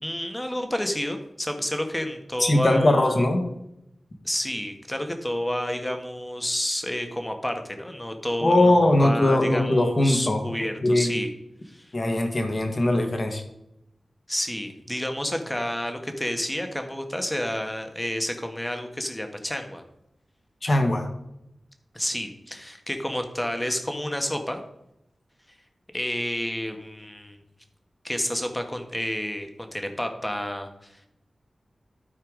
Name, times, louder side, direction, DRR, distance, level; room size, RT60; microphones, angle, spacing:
voice 1, 0.0-3.2 4.2-11.3 11.6-11.9 14.3-19.8 21.9-24.6 25.9-27.4 28.0-31.1, left 1 dB, 15° left, 5 dB, 1.5 m, -30 dB
voice 2, 2.4-3.4 8.4-10.4 10.8-11.2 11.9-13.4 20.6-21.1, left 1 dB, 45° left, 4 dB, 1.8 m, -20 dB
12.5 x 4.6 x 5.1 m, 0.83 s
wide cardioid pair, 70°, 0 cm